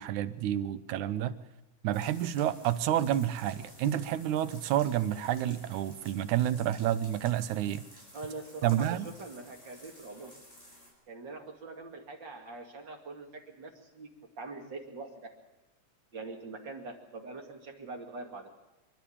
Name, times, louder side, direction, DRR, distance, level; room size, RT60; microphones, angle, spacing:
voice 1, 0.0-1.4 1.8-7.8 8.6-9.1, right 11 dB, 90° right, 12 dB, 2.3 m, -29 dB
sound 1, 1.9-10.9, equal, 25° left, 5.9 m, -54 dB
voice 2, 8.1-10.3 11.1-14.1 14.4-15.3 16.1-18.6, right 3 dB, 40° right, 2 dB, 2.8 m, -43 dB
25.5 x 12.0 x 8.7 m, 1.0 s
omnidirectional pair, 3.3 m